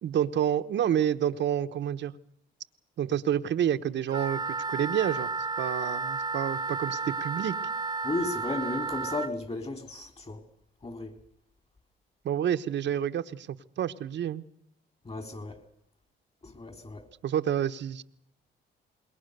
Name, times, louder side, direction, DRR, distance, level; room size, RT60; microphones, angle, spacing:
voice 1, 0.0-2.1 3.0-5.3 5.6-7.5 12.2-14.4 17.2-18.0, right 10 dB, 65° right, 1.1 m, -29 dB
Wind instrument woodwind instrument, 4.1-9.3, right 4 dB, 20° right, 0.9 m, -32 dB
voice 2, 8.0-10.4 10.8-11.1 15.1-15.6 16.4-17.0, left 2 dB, 30° left, 3.9 m, -34 dB
26.5 x 21.5 x 6.8 m
cardioid pair, 90°, 20 cm